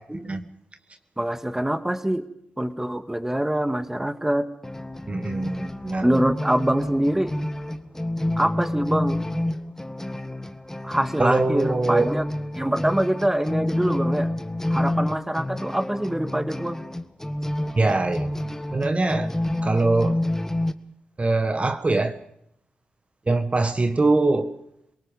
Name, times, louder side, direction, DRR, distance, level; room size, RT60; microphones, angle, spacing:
voice 1, 1.2-2.3 2.6-4.5 6.0-7.4 8.4-9.2 10.8-12.2 12.6-14.3 14.7-16.8, right 1 dB, 10° right, 10 dB, 1.8 m, -24 dB
sound 1, 4.6-20.7, left 1 dB, 10° left, 1.8 m, -29 dB
voice 2, 5.1-6.2 11.2-12.1 17.8-18.3 18.7-19.3 19.6-20.2 21.2-22.1 23.3-24.5, right 2 dB, 35° right, 9 dB, 1.6 m, -22 dB
27.5 x 18.5 x 5.3 m, 0.76 s
supercardioid pair, 40°, 4 cm